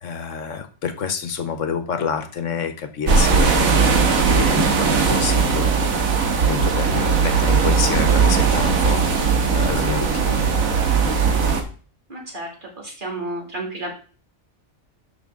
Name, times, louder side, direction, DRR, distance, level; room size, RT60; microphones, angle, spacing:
voice 1, 0.0-10.5, left 6 dB, 65° left, 9 dB, 1.4 m, -28 dB
sound 1, 3.1-11.6, right 5 dB, 80° right, 1.7 m, -18 dB
voice 2, 12.1-13.9, right 1 dB, 35° right, -1 dB, 3.0 m, -31 dB
11.5 x 5.9 x 3.8 m, 0.39 s
omnidirectional pair, 1.4 m